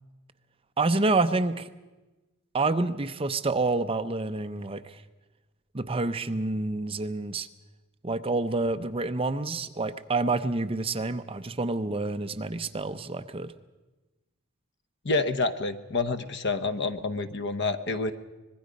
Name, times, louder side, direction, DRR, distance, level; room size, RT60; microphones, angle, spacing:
voice 1, 0.8-1.7 2.5-5.0 5.7-7.5 8.0-13.5, right 3 dB, 25° right, 10 dB, 0.6 m, -28 dB
voice 2, 15.0-18.1, left 3 dB, 50° left, 10 dB, 1.0 m, -28 dB
25.0 x 20.5 x 5.2 m, 1.1 s
head